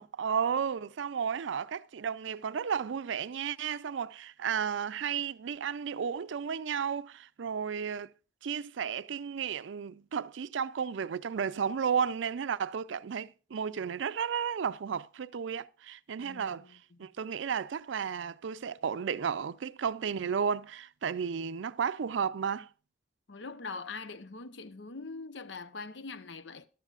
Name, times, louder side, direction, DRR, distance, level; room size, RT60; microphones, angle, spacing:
voice 1, 0.0-8.1 8.4-16.7 17.0-22.7, right 7 dB, 80° right, 0.4 m, -33 dB
voice 2, 16.2-17.1 23.3-26.7, left 4 dB, 75° left, 0.8 m, -43 dB
14.5 x 11.5 x 2.4 m
head